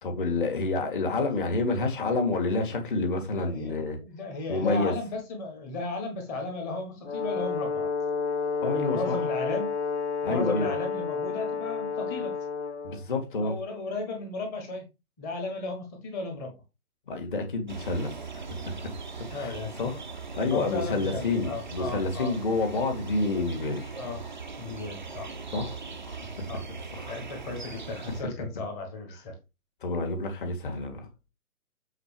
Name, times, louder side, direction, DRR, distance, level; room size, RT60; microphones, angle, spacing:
voice 1, 0.0-4.0 4.5-4.9 8.6-9.3 10.2-10.7 12.8-13.6 17.1-18.5 19.3-20.0 20.3-23.9 25.5-25.8 26.1-26.3 26.9-27.1 29.8-31.1, left 3 dB, 35° left, 2.0 m, -29 dB
voice 2, 3.3-7.9 8.8-9.7 10.3-12.3 13.4-14.8 15.2-16.5 19.2-19.7 20.5-22.3 24.0-24.2 24.6-25.3 26.5-26.6 27.0-29.4, left 3 dB, 10° left, 1.3 m, -35 dB
Brass instrument, 7.0-13.0, left 5 dB, 50° left, 0.5 m, -30 dB
sound 1, 17.7-28.2, right 4 dB, 30° right, 0.6 m, -40 dB
8.0 x 4.1 x 4.5 m
figure-of-eight pair, 140°, 45 cm